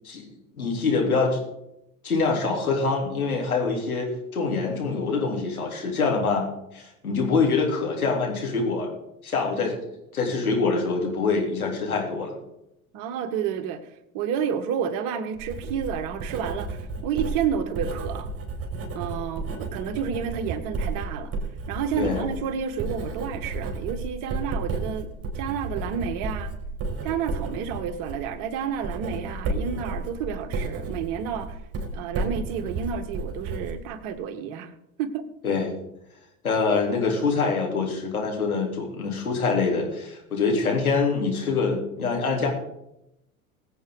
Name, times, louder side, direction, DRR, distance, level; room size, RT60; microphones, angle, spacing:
voice 1, 0.6-1.4 2.0-6.5 6.7-8.9 9.2-9.7 10.1-12.3 22.0-22.2 35.4-35.7 36.4-42.5, left 4 dB, 80° left, -1 dB, 3.6 m, -25 dB
voice 2, 12.9-13.8 14.1-18.3 18.9-21.3 21.7-25.1 25.3-26.5 27.0-31.6 31.9-34.7 35.0-35.2, right 7 dB, 50° right, 8 dB, 1.7 m, -30 dB
Writing, 15.4-34.2, right 3 dB, 35° right, 3.9 m, -32 dB
22.0 x 8.2 x 4.0 m, 0.83 s
figure-of-eight pair, 75°, 43 cm